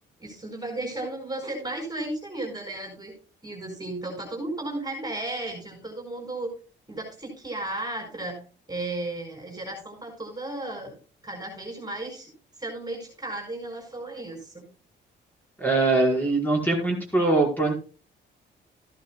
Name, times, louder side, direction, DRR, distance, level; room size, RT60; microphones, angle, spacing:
voice 1, 0.2-3.1 3.4-6.5 6.9-8.4 8.7-11.0 11.2-12.3 12.6-14.6, right 2 dB, 20° right, 2 dB, 5.0 m, -34 dB
voice 2, 15.6-17.7, right 2 dB, 10° left, -1 dB, 5.2 m, -22 dB
14.5 x 11.0 x 2.3 m, 0.36 s
cardioid pair, 90°, 20 cm